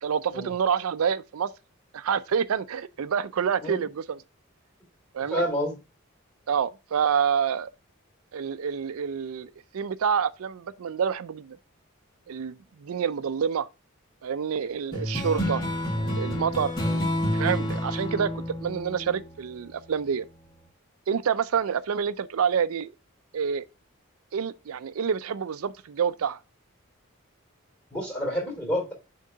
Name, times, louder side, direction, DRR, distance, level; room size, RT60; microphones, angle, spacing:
voice 1, 0.0-1.5 1.9-4.2 5.1-5.4 6.5-7.7 8.3-11.6 12.3-13.7 14.2-15.6 16.0-16.7 17.3-20.3 21.1-22.9 23.3-23.6 24.3-26.4, right 7 dB, 80° right, 0.4 m, -27 dB
voice 2, 5.2-5.8 16.8-17.0 27.9-28.9, equal, 5° left, 3.2 m, -29 dB
sound 1, 14.9-19.8, left 1 dB, 20° left, 1.9 m, -29 dB
6.4 x 3.7 x 5.5 m
head